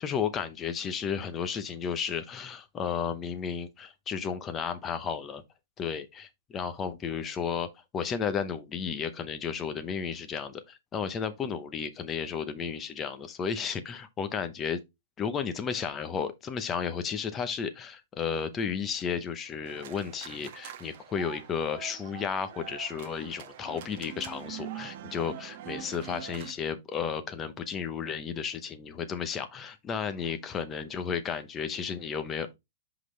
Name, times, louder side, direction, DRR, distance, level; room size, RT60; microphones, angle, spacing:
voice 1, 0.0-5.4 5.8-7.7 7.9-14.8 15.2-32.6, left 6 dB, 15° left, 0.7 m, -33 dB
sound 1, 19.7-26.5, right 10 dB, 45° right, 1.1 m, -44 dB
5.9 x 5.3 x 3.2 m
hypercardioid pair, 160°, 0 cm